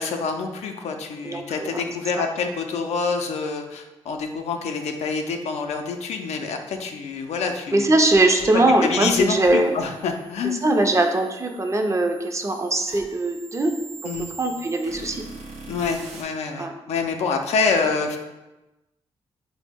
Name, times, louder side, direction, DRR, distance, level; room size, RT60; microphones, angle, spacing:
voice 1, 0.0-7.9 8.8-10.6 14.0-14.3 15.7-18.2, left 5 dB, 85° left, 4 dB, 0.4 m, -26 dB
voice 2, 1.2-1.8 2.2-2.3 7.7-9.8 10.4-13.7 14.4-15.2 16.6-16.7, right 2 dB, 25° right, 4 dB, 0.5 m, -21 dB
sound 1, 8.1-16.2, right 3 dB, 90° right, 0.5 m, -43 dB
3.9 x 2.0 x 3.4 m, 1.0 s
cardioid pair, 55°, 11 cm